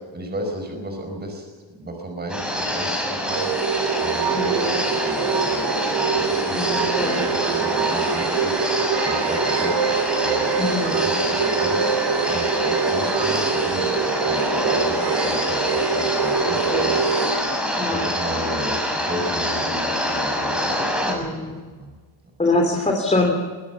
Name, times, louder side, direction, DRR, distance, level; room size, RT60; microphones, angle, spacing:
voice 1, 0.1-1.5 1.7-3.5 4.0-10.5 10.9-12.0 12.2-14.0 14.2-21.9, right 1 dB, 20° right, 4 dB, 5.0 m, -34 dB
sound 1, 2.3-21.1, equal, ahead, 6.2 m, -25 dB
sound 2, 3.3-17.4, right 6 dB, 60° right, 3.1 m, -24 dB
voice 2, 4.3-4.8 6.5-7.2 10.6-11.1 16.4-17.0 17.8-18.1 21.0-21.6 22.4-23.4, left 2 dB, 15° left, 1 dB, 3.1 m, -24 dB
22.5 x 17.5 x 7.2 m, 1.5 s
cardioid pair, 130°, 47 cm